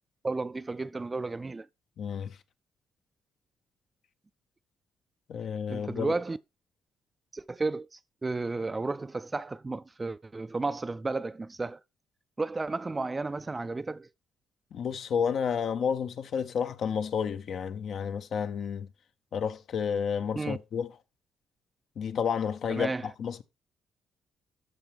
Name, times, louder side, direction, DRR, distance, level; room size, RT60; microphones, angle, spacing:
voice 1, 0.2-1.7 5.7-6.4 7.3-11.8 12.4-14.1 20.3-20.6 22.7-23.1, right 3 dB, 25° right, 0.3 m, -33 dB
voice 2, 2.0-2.4 5.3-6.1 14.7-18.9 19.3-20.9 22.0-22.9 23.2-23.4, left 7 dB, 65° left, 0.7 m, -31 dB
13.0 x 4.6 x 3.4 m
cardioid pair, 90°, 0 cm